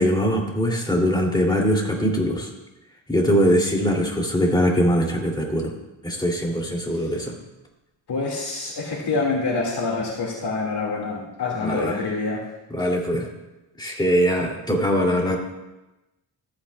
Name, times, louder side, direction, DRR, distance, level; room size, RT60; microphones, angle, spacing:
voice 1, 0.0-2.5 3.1-5.7 6.0-7.4 11.6-12.0 12.7-13.3 13.8-15.4, equal, 10° left, -1 dB, 2.7 m, -22 dB
voice 2, 8.1-12.4, left 3 dB, 55° left, -3 dB, 2.2 m, -26 dB
14.5 x 8.7 x 2.3 m, 0.99 s
cardioid pair, 70°, 48 cm